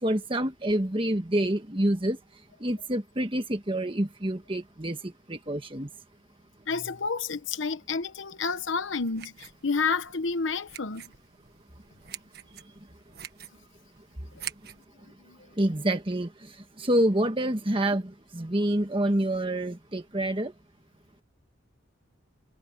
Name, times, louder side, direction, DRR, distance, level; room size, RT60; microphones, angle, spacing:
voice 1, 0.0-2.2 2.6-5.9 15.6-20.5, right 1 dB, 25° right, 1.6 m, -27 dB
voice 2, 6.7-11.0 15.2-15.4, left 4 dB, 80° left, 1.0 m, -30 dB
sound 1, 8.5-14.9, right 10 dB, 55° right, 1.7 m, -46 dB
head